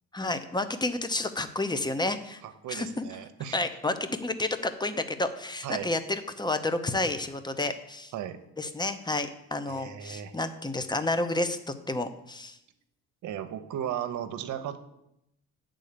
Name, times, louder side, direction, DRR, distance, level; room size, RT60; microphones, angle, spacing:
voice 1, 0.1-2.4 2.7-3.0 3.5-8.1 8.6-11.6 11.9-12.6, left 2 dB, 15° left, 10 dB, 0.7 m, -30 dB
voice 2, 2.4-3.7 5.6-5.9 8.1-8.4 9.7-10.4 13.2-14.8, right 10 dB, 70° right, 10 dB, 0.8 m, -36 dB
8.3 x 3.8 x 6.7 m, 0.81 s
supercardioid pair, 75°, 31 cm